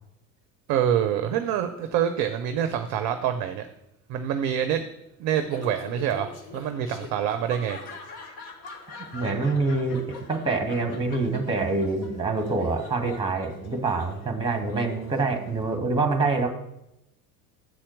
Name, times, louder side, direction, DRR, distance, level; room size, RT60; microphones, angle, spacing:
voice 1, 0.7-3.7 4.1-4.9 5.2-7.8, right 9 dB, 40° right, 8 dB, 0.6 m, -26 dB
Laughter, 5.4-15.8, left 3 dB, 60° left, 1.5 m, -44 dB
voice 2, 9.1-16.5, right 3 dB, 10° right, 6 dB, 1.4 m, -26 dB
7.8 x 4.3 x 6.2 m, 0.84 s
figure-of-eight pair, 70°, 48 cm